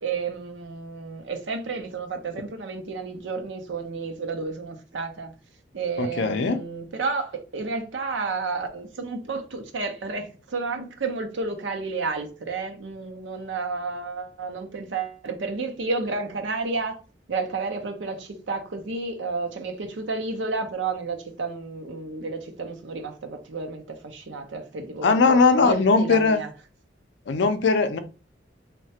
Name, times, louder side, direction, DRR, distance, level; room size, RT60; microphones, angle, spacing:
voice 1, 0.0-5.3 5.7-17.0 17.3-26.5, right 4 dB, 85° right, 0.6 m, -31 dB
voice 2, 6.0-6.6 25.0-26.4 27.3-28.0, left 4 dB, 70° left, 0.4 m, -19 dB
3.2 x 2.1 x 2.7 m
head